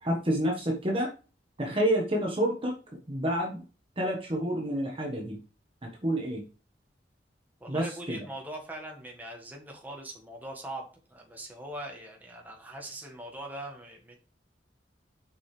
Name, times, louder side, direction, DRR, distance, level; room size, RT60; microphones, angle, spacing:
voice 1, 0.0-1.1 1.6-2.8 3.1-3.6 4.0-5.4 6.0-6.4 7.7-8.2, equal, 30° right, 0 dB, 1.5 m, -28 dB
voice 2, 7.6-14.2, right 1 dB, 10° right, 0 dB, 1.8 m, -41 dB
7.4 x 5.5 x 3.3 m, 0.34 s
head